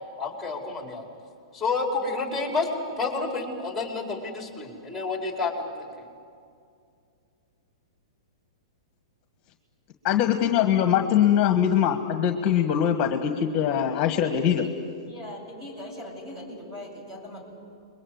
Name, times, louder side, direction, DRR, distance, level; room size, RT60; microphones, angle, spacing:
voice 1, 0.2-1.0 1.5-2.7 3.0-5.9, left 3 dB, 5° left, 1 dB, 5.0 m, -29 dB
voice 2, 10.0-14.6, left 9 dB, 35° left, 7 dB, 1.5 m, -22 dB
voice 3, 15.1-17.4, left 1 dB, 15° right, -2 dB, 8.0 m, -40 dB
28.5 x 22.5 x 7.9 m, 2.3 s
hypercardioid pair, 130°, 3 cm